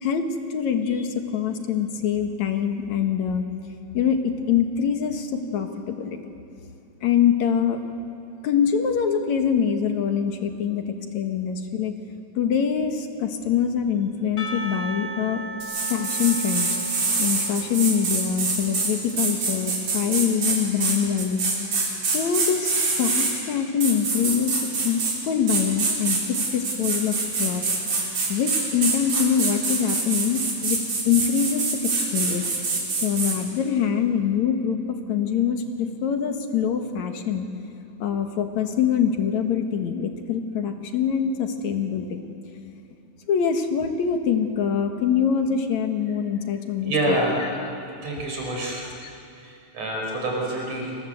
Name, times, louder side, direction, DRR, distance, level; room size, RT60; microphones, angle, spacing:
voice 1, 0.0-3.4 3.9-6.2 7.0-7.8 8.4-10.8 11.1-11.9 12.3-15.4 15.9-16.7 17.2-21.4 22.1-27.6 28.3-30.8 31.1-32.4 33.0-37.5 38.0-42.2 43.3-47.7 48.9-49.1, left 7 dB, 70° left, 5 dB, 2.8 m, -24 dB
Percussion / Church bell, 14.4-18.9, right 1 dB, 30° left, 2.5 m, -36 dB
sound 1, 15.6-23.3 23.8-25.2 25.5-33.4, right 4 dB, 75° right, 5.4 m, -25 dB
voice 2, 46.8-47.5 48.0-48.9 49.4-51.0, right 1 dB, 60° right, -1 dB, 6.0 m, -27 dB
28.5 x 21.5 x 7.9 m, 2.8 s
omnidirectional pair, 3.4 m